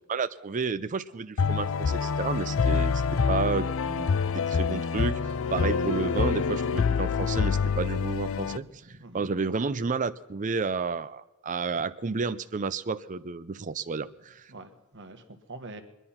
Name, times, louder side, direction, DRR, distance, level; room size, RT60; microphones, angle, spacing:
voice 1, 0.1-14.5, right 4 dB, 35° right, 12 dB, 0.5 m, -31 dB
sound 1, 1.4-8.6, left 5 dB, 60° left, 0.5 m, -26 dB
voice 2, 8.9-9.3 14.5-15.8, right 2 dB, 55° right, 7 dB, 1.5 m, -45 dB
21.5 x 11.0 x 5.7 m, 1.1 s
head